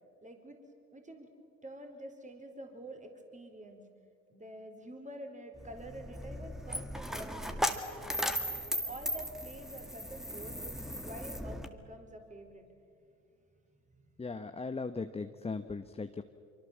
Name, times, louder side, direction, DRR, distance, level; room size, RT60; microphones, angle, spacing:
voice 1, 0.2-0.6 0.9-1.3 1.6-3.8 4.3-7.6 8.8-12.7 13.0-13.1 13.9-14.2, right 1 dB, 20° right, 5 dB, 4.4 m, -47 dB
Coin (dropping), 5.6-11.7, equal, ahead, 2.1 m, -37 dB
voice 2, 14.2-16.2, left 4 dB, 15° left, 9 dB, 1.0 m, -38 dB
24.5 x 24.5 x 7.4 m, 2.5 s
hypercardioid pair, 65°, 38 cm